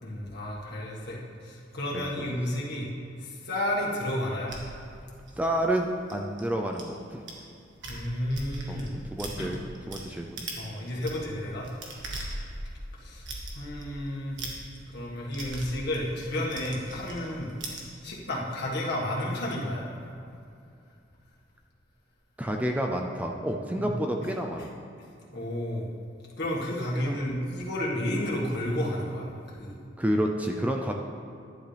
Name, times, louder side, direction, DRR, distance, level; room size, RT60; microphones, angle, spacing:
voice 1, 0.0-1.2 1.4-2.9 3.2-4.6 7.9-9.0 9.4-9.6 10.1-10.2 10.6-11.7 13.0-13.3 13.5-14.4 14.9-19.9 23.8-23.9 25.3-25.9 26.4-29.3 29.6-29.8, left 1 dB, 60° left, -4 dB, 1.8 m, -31 dB
voice 2, 1.9-2.3 5.4-7.2 8.7-8.8 9.1-9.6 9.9-10.4 22.4-24.7 26.9-27.2 30.0-30.9, right 1 dB, 10° right, 2 dB, 0.5 m, -29 dB
sound 1, 4.5-6.8 7.3-7.4 7.7-10.0 10.4-10.7 10.9-17.8, right 2 dB, 65° right, 1.7 m, -40 dB
11.0 x 10.5 x 3.4 m, 2.5 s
head